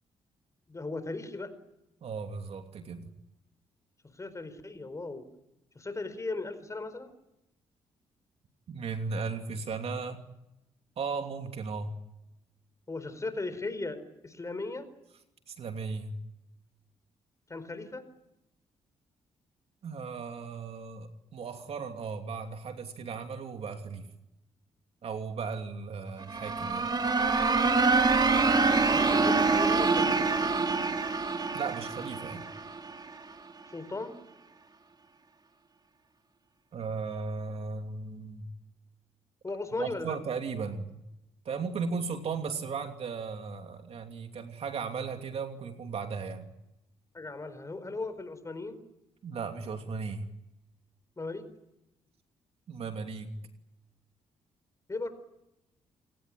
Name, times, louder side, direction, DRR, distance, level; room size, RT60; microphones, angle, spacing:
voice 1, 0.7-1.5 4.2-5.3 5.7-7.1 12.9-14.0 14.2-14.9 17.5-18.0 28.6-30.5 33.7-34.1 39.4-40.2 47.1-48.8 51.2-51.5 54.9-55.1, left 3 dB, 25° left, 12 dB, 4.5 m, -37 dB
voice 2, 2.0-3.1 8.7-10.2 11.0-12.0 15.5-16.2 19.8-24.1 25.0-26.9 31.5-32.5 36.7-38.5 39.8-41.0 41.4-46.5 49.2-50.3 52.7-53.3, right 5 dB, 60° right, 6 dB, 2.9 m, -36 dB
sound 1, 26.2-33.0, right 4 dB, 35° right, 3.1 m, -25 dB
28.5 x 18.0 x 9.9 m, 0.91 s
supercardioid pair, 65°, 11 cm